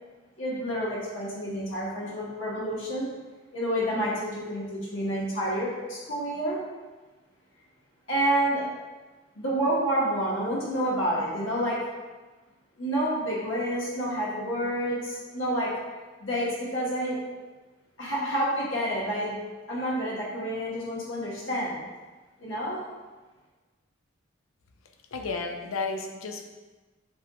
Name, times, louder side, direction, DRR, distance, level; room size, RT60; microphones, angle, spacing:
voice 1, 0.4-3.1 3.5-6.6 8.1-8.7 9.3-11.8 12.8-15.7 16.2-17.2 18.0-19.3 19.7-21.8 22.4-22.8, right 1 dB, 75° left, -6 dB, 1.2 m, -29 dB
voice 2, 25.1-26.5, left 4 dB, 90° left, 3 dB, 0.6 m, -32 dB
7.2 x 2.9 x 2.3 m, 1.3 s
head